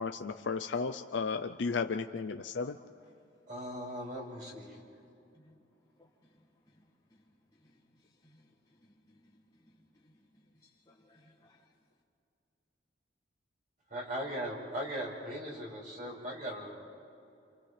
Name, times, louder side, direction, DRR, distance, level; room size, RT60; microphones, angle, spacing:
voice 1, 0.0-2.8, left 4 dB, 75° left, 7 dB, 0.5 m, -34 dB
voice 2, 3.5-4.8 13.9-16.7, equal, 45° right, -3 dB, 5.4 m, -39 dB
voice 3, 8.8-9.4 10.0-10.1 10.9-11.6, left 1 dB, 20° left, -9 dB, 2.0 m, -63 dB
29.0 x 28.0 x 3.3 m, 2.7 s
head